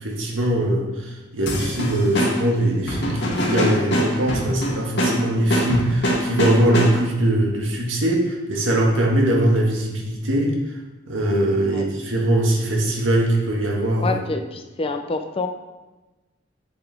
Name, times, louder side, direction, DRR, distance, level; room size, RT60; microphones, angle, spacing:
voice 1, 0.0-0.9 1.3-10.5 11.1-14.2, right 1 dB, 85° right, -1 dB, 1.7 m, -21 dB
sound 1, 1.5-7.2, equal, 65° left, 1.8 m, -24 dB
voice 2, 14.0-15.5, left 3 dB, 30° left, 5 dB, 0.6 m, -27 dB
8.1 x 6.8 x 3.5 m, 1.1 s
head